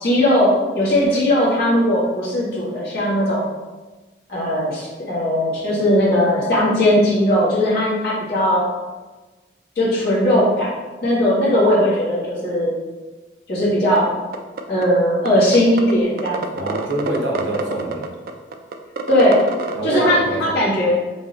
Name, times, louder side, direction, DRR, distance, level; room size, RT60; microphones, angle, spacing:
voice 1, 0.0-3.4 4.3-8.6 9.7-10.7 11.0-12.8 13.5-14.1 14.7-16.7 19.1-19.5 19.8-21.0, equal, 55° left, -7 dB, 1.5 m, -18 dB
sound 1, 14.0-14.1 14.3-14.8 15.3-15.4 15.5-15.9 16.2-19.7, right 4 dB, 50° right, 0.3 m, -26 dB
voice 2, 16.5-18.1 19.7-20.6, right 1 dB, 85° right, -1 dB, 0.8 m, -25 dB
4.9 x 2.7 x 2.8 m, 1.2 s
head